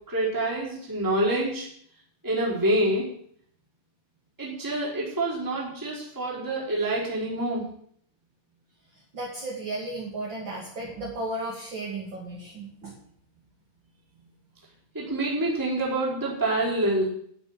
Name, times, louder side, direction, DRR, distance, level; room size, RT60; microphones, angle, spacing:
voice 1, 0.1-1.7 2.2-3.1 4.4-7.6 14.9-17.1, right 1 dB, 5° right, -6 dB, 4.2 m, -26 dB
voice 2, 9.1-12.9, right 2 dB, 30° right, -3 dB, 2.7 m, -34 dB
13.0 x 7.4 x 8.9 m, 0.64 s
omnidirectional pair, 4.9 m